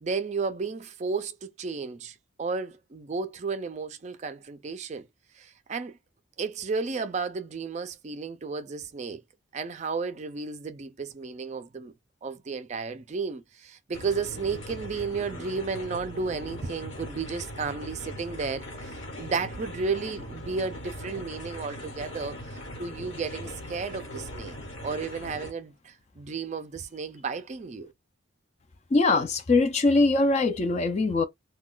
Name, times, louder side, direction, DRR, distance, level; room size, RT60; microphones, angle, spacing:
voice 1, 0.0-5.1 5.4-6.0 6.4-9.2 9.5-11.9 12.2-24.6 24.8-27.9, right 4 dB, 35° right, 0.4 m, -33 dB
sound 1, 13.9-25.5, left 1 dB, 70° left, 1.2 m, -40 dB
voice 2, 28.9-31.2, left 3 dB, 35° left, 0.4 m, -22 dB
2.3 x 2.2 x 3.7 m
head